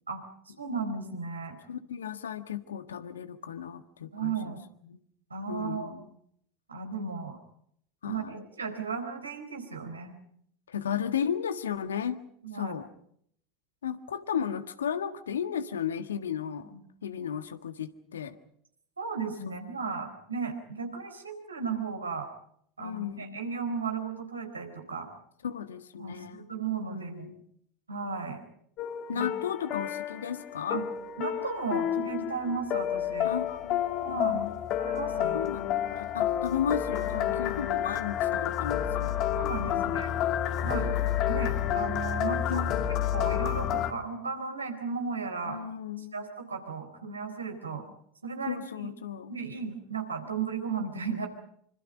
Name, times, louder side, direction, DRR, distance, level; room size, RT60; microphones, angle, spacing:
voice 1, 0.1-1.6 4.1-4.6 5.3-5.9 6.7-7.4 8.0-10.2 12.4-12.8 16.7-16.8 19.0-22.3 22.8-25.1 26.0-27.3 27.9-28.4 29.1-29.3 30.7-30.9 31.2-33.3 34.0-34.4 34.8-35.5 37.1-37.4 39.4-40.1 40.6-40.9 41.3-42.7 43.1-45.6 46.1-47.9 48.2-48.9 49.3-51.3, right 5 dB, 85° right, 5 dB, 4.1 m, -35 dB
voice 2, 1.7-4.6 4.8-5.0 5.5-6.1 8.0-8.4 10.7-12.2 12.5-12.9 13.8-16.7 17.0-18.4 19.4-19.6 22.8-23.4 25.4-26.5 26.9-27.4 29.1-30.8 33.2-34.6 35.3-39.4 39.8-40.0 40.7-41.2 42.5-42.9 45.4-46.3 47.7-47.8 48.5-49.3, left 8 dB, 75° left, 10 dB, 1.6 m, -35 dB
sound 1, 28.8-43.9, left 11 dB, 45° left, 2.1 m, -30 dB
26.0 x 25.5 x 5.1 m, 0.67 s
figure-of-eight pair, 80°, 0 cm